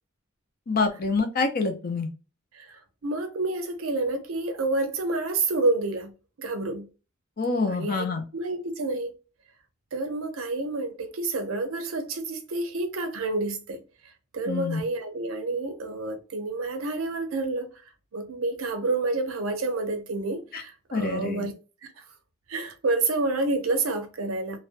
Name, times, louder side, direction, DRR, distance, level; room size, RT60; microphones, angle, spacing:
voice 1, 0.7-2.1 7.4-8.2 14.5-14.8 20.5-20.6 20.9-21.5, left 4 dB, 45° left, 0.5 m, -26 dB
voice 2, 2.5-6.1 6.4-6.9 7.7-8.0 8.3-9.1 9.9-13.8 14.3-17.7 18.1-21.5 22.5-24.6, right 2 dB, 85° right, 0.6 m, -29 dB
2.4 x 2.1 x 2.4 m
head